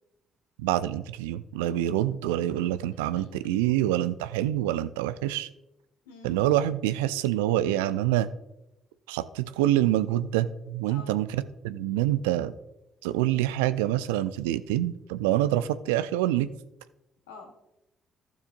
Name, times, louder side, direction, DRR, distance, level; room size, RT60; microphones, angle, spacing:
voice 1, 0.6-5.5 6.2-8.3 9.1-12.5 13.0-16.5, right 13 dB, 80° right, 14 dB, 0.4 m, -26 dB
voice 2, 3.1-3.6 6.0-6.4 10.9-11.1 17.3-17.7, left 4 dB, 80° left, 2 dB, 1.4 m, -47 dB
14.5 x 6.6 x 2.6 m, 0.92 s
figure-of-eight pair, 45°, 0 cm